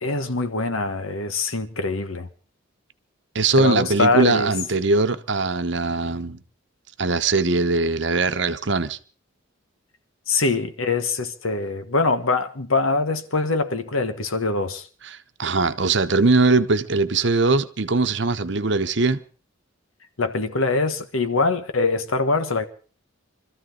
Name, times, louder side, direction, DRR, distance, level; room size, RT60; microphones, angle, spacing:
voice 1, 0.0-2.3 3.6-4.5 10.3-14.9 20.2-22.6, left 3 dB, 85° left, 1.5 m, -23 dB
voice 2, 3.3-6.4 7.0-9.0 15.1-19.2, right 3 dB, 60° right, 0.9 m, -21 dB
25.0 x 14.0 x 3.9 m
head